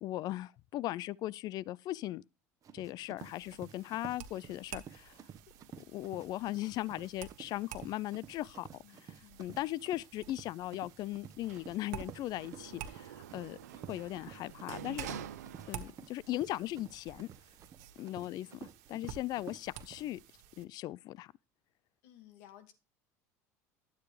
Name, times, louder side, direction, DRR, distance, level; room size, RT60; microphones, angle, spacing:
voice 1, 0.0-2.2 2.7-5.2 5.9-13.6 13.9-15.2 15.7-17.3 18.0-20.2 20.6-21.3, left 15 dB, 50° left, 0.4 m, -38 dB
Run, 2.6-20.0, right 8 dB, 40° right, 1.0 m, -52 dB
sound 1, 3.2-20.7, right 9 dB, 70° right, 1.3 m, -51 dB
voice 2, 8.8-9.5 15.7-16.1 22.0-22.7, left 12 dB, 70° left, 2.0 m, -58 dB
Sliding door, 11.4-16.2 16.6-17.5, right 9 dB, 85° right, 0.7 m, -48 dB
11.5 x 8.2 x 3.3 m
hypercardioid pair, 80°, 9 cm